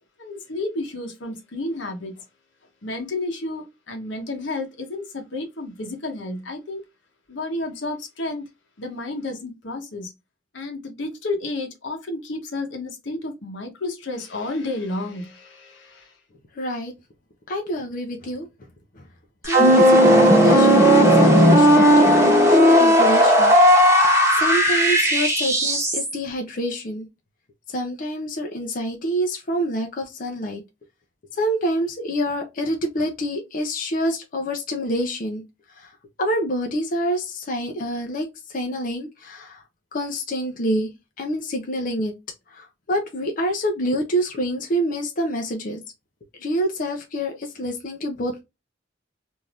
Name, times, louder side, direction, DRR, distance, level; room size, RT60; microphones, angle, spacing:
voice 1, 0.2-2.1 2.8-6.8 7.3-8.4 8.8-10.1 10.5-16.0, left 2 dB, 80° left, 0.9 m, -31 dB
voice 2, 16.6-16.9 17.5-18.5 19.0-19.1 19.4-23.5 23.8-27.1 27.7-30.6 31.3-35.4 35.8-35.9 36.2-39.6 39.9-40.9 41.2-42.1 42.5-45.8 46.4-48.4, equal, 45° left, 0.6 m, -27 dB
Dirty Distorted Rise, 19.4-26.1, equal, 15° right, 1.1 m, -15 dB
3.3 x 2.6 x 2.3 m
head